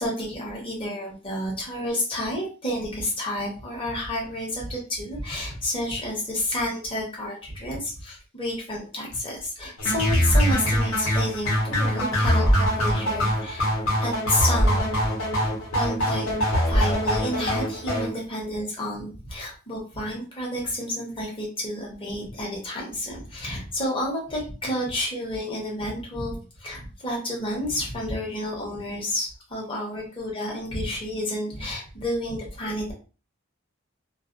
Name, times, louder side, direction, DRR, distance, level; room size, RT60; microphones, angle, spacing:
voice 1, 0.0-14.8 15.7-16.3 16.7-32.9, left 1 dB, 25° left, -3 dB, 0.9 m, -30 dB
sound 1, 9.8-18.1, equal, 85° left, 1.0 m, -23 dB
2.4 x 2.0 x 2.5 m, 0.35 s
head